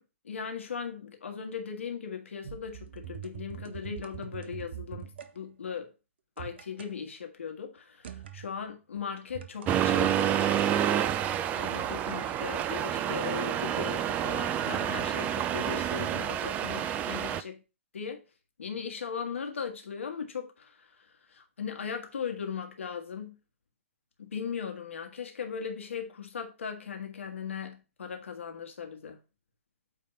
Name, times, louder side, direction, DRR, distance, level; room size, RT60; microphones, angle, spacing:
voice 1, 0.0-5.9 6.4-11.1 11.6-17.6 17.9-18.2 18.6-23.4 24.2-29.2, left 6 dB, 70° left, 1.7 m, -38 dB
sound 1, 2.4-5.3 6.4-6.9 8.0-8.5 9.3-10.6 12.1-14.0 14.3-14.4, right 9 dB, 55° right, 0.8 m, -44 dB
Accelerating revving vroom, 9.7-17.4, right 10 dB, 20° right, 0.4 m, -29 dB
8.8 x 3.4 x 5.4 m
figure-of-eight pair, 120°, 7 cm